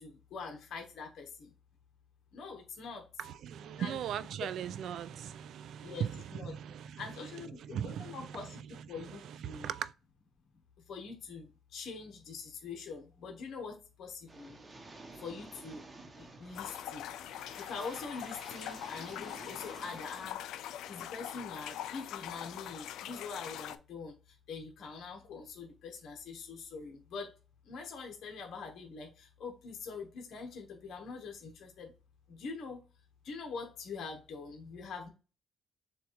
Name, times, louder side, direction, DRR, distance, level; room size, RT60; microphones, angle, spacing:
voice 1, 0.0-1.5 2.3-3.1 3.8-4.0 5.8-6.6 7.0-8.6 8.9-9.7 10.9-14.6 15.2-15.8 16.2-17.1 17.6-20.4 20.9-27.3 27.6-31.9 32.3-32.8 33.2-35.1, left 4 dB, 65° left, 1.1 m, -44 dB
voice 2, 3.2-7.0 7.6-8.4 8.9-9.9, right 9 dB, 75° right, 0.4 m, -39 dB
sound 1, 14.3-20.3, right 3 dB, 30° right, 0.9 m, -52 dB
sound 2, 16.5-23.8, left 11 dB, 85° left, 0.4 m, -43 dB
6.9 x 2.5 x 3.1 m
cardioid pair, 90°, 0 cm